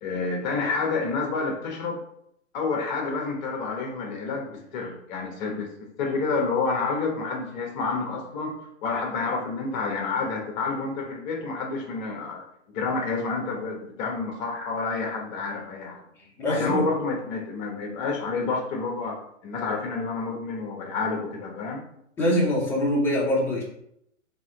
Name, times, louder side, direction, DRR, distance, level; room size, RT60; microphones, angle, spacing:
voice 1, 0.0-2.0 2.5-8.5 8.8-12.4 12.7-16.0 16.5-19.2 19.4-21.8, left 4 dB, 35° left, 1 dB, 1.1 m, -29 dB
voice 2, 16.2-16.9 22.2-23.6, left 1 dB, 5° left, -4 dB, 0.6 m, -24 dB
4.1 x 2.8 x 3.7 m, 0.75 s
hypercardioid pair, 140°, 39 cm